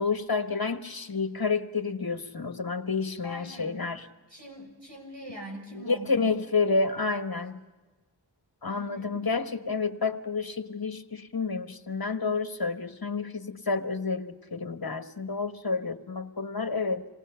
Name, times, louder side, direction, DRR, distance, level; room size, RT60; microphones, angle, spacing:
voice 1, 0.0-4.0 5.7-7.6 8.6-17.1, left 4 dB, 50° left, 8 dB, 1.3 m, -29 dB
voice 2, 3.2-3.8 4.3-6.4 8.7-9.2, equal, 75° right, 0 dB, 6.2 m, -43 dB
27.0 x 19.5 x 5.7 m, 1.2 s
wide cardioid pair, 45°, 45 cm